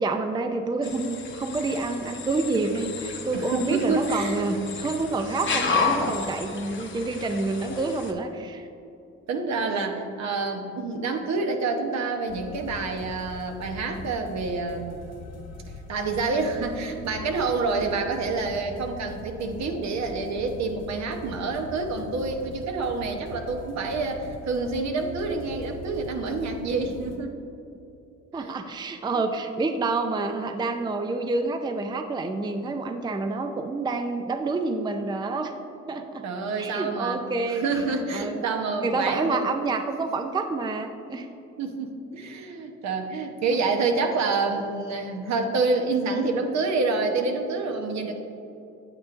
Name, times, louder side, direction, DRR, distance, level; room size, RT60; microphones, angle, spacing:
voice 1, 0.0-8.7 28.3-35.5 35.9-36.2 36.6-37.6 38.1-38.4 38.8-41.3, right 3 dB, 15° right, 6 dB, 0.4 m, -28 dB
sound 1, 0.8-8.1, left 4 dB, 40° left, 0.9 m, -32 dB
voice 2, 3.3-4.4 6.2-6.3 9.3-15.0 15.9-27.3 28.4-28.6 29.1-29.2 36.2-37.2 37.5-39.4 41.6-48.2, right 3 dB, 65° right, 3 dB, 1.0 m, -27 dB
sound 2, 12.3-27.2, left 2 dB, 55° left, 1.3 m, -42 dB
8.8 x 8.3 x 2.5 m, 2.8 s
cardioid pair, 90°, 30 cm